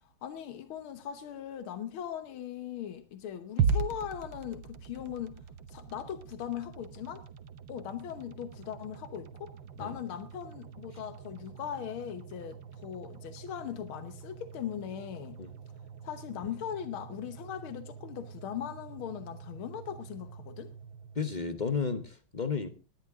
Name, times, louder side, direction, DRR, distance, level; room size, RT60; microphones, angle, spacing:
voice 1, 0.2-5.4 5.7-7.2 7.7-9.5 9.8-15.4 16.0-20.7, left 9 dB, 85° left, 2.0 m, -39 dB
sound 1, 3.6-21.8, right 6 dB, 70° right, 1.7 m, -40 dB
voice 2, 21.1-22.7, left 5 dB, 45° left, 0.6 m, -32 dB
19.0 x 11.0 x 3.6 m
omnidirectional pair, 2.2 m